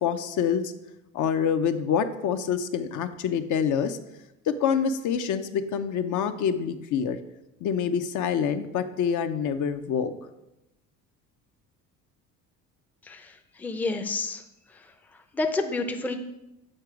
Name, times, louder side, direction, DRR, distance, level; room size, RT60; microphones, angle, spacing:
voice 1, 0.0-0.6 1.1-4.0 4.5-7.2 7.6-10.2, left 7 dB, 60° left, 9 dB, 0.6 m, -26 dB
voice 2, 13.0-14.4 14.7-14.9 15.3-16.2, left 3 dB, 5° left, 6 dB, 0.4 m, -30 dB
6.6 x 3.8 x 4.7 m, 0.91 s
cardioid pair, 100°, 34 cm